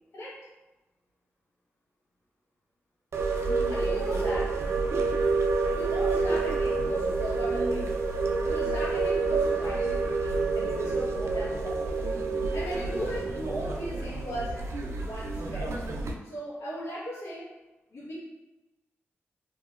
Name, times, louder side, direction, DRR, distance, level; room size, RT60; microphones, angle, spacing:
sound 1, 3.1-16.1, right 3 dB, 70° right, 0.3 m, -28 dB
voice 1, 3.7-4.6 5.7-7.9 8.4-12.1 12.4-14.7 15.0-15.7 16.2-17.5 17.9-18.1, equal, 75° left, -8 dB, 1.2 m, -38 dB
2.8 x 2.7 x 2.4 m, 1.1 s
cardioid pair, 75°, 5 cm